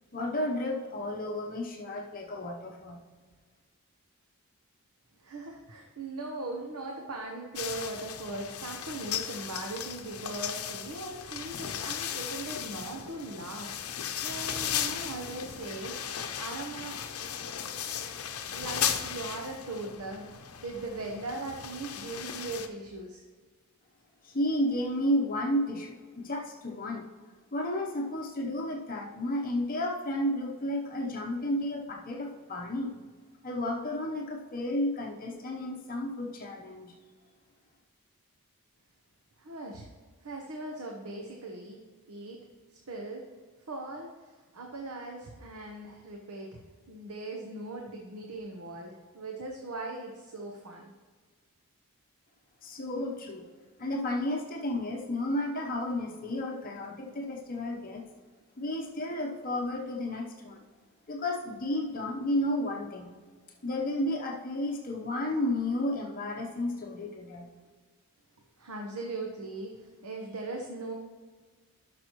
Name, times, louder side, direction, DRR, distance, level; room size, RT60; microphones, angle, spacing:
voice 1, 0.1-3.0 24.2-27.1 27.5-33.0 33.4-36.9 52.6-53.5 53.8-58.1 58.6-60.6 61.1-63.1 63.6-67.5, left 1 dB, 40° left, 0 dB, 0.8 m, -32 dB
voice 2, 5.2-16.0 16.4-17.0 18.5-23.2 39.4-39.9 40.2-41.8 42.1-42.4 42.7-43.3 43.7-46.6 46.9-50.9 68.6-70.9, right 2 dB, 80° right, 1 dB, 1.0 m, -39 dB
sound 1, 7.6-22.7, left 9 dB, 75° left, 0.7 m, -36 dB
12.5 x 6.1 x 3.0 m, 1.5 s
head